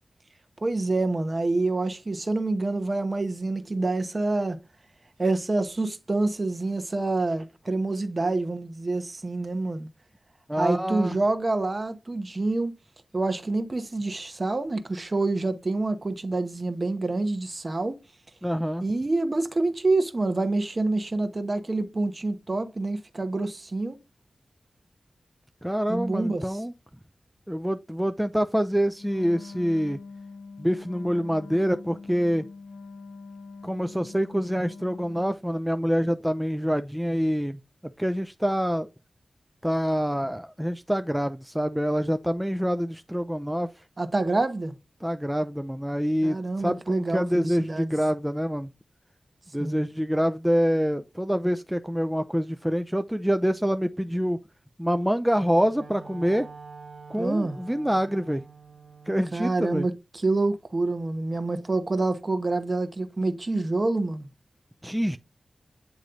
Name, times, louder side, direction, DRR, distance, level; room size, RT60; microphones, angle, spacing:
voice 1, 0.6-4.6 5.2-9.9 10.6-12.7 13.1-18.0 18.8-24.0 25.9-26.6 44.0-44.7 46.2-47.9 49.6-49.9 57.2-57.6 59.3-64.3, right 2 dB, 40° right, 1.1 m, -27 dB
voice 2, 10.5-11.2 18.4-18.8 25.6-26.7 27.5-30.0 30.6-32.5 33.6-37.6 38.0-38.9 39.6-43.7 45.0-48.7 49.5-54.4 54.8-56.5 57.1-58.4 59.1-59.9 64.8-65.2, equal, 5° right, 0.4 m, -26 dB
Wind instrument woodwind instrument, 28.9-35.4, left 4 dB, 65° left, 0.6 m, -43 dB
Wind instrument woodwind instrument 2, 55.3-59.4, right 5 dB, 65° right, 1.1 m, -47 dB
9.3 x 3.1 x 3.8 m
wide cardioid pair, 70°, 0 cm